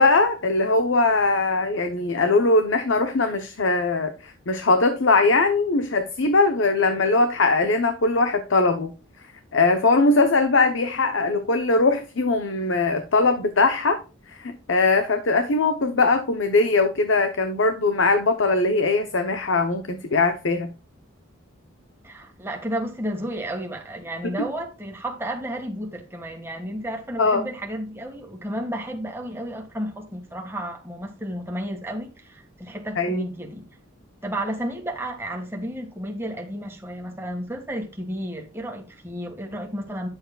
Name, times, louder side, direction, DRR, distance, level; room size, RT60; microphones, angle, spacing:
voice 1, 0.0-8.9 9.5-14.0 14.3-20.7 24.2-24.5 27.2-27.4 33.0-33.2, left 3 dB, 65° left, 0.8 m, -21 dB
voice 2, 22.0-33.7 34.2-40.1, equal, 10° right, 1.7 m, -32 dB
10.0 x 7.2 x 2.3 m
head